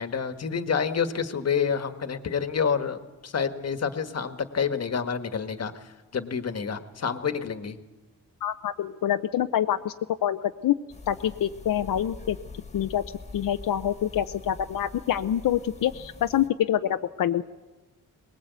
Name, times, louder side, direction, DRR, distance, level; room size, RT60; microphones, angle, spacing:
voice 1, 0.0-7.8, left 6 dB, 50° left, 9 dB, 1.4 m, -28 dB
voice 2, 8.4-9.9 10.2-10.7 11.1-12.4 12.7-13.0 13.3-17.4, left 11 dB, 85° left, 8 dB, 0.7 m, -26 dB
sound 1, 10.9-16.5, left 3 dB, 20° left, 1.7 m, -44 dB
22.5 x 20.0 x 8.2 m, 1.2 s
wide cardioid pair, 145°, 32 cm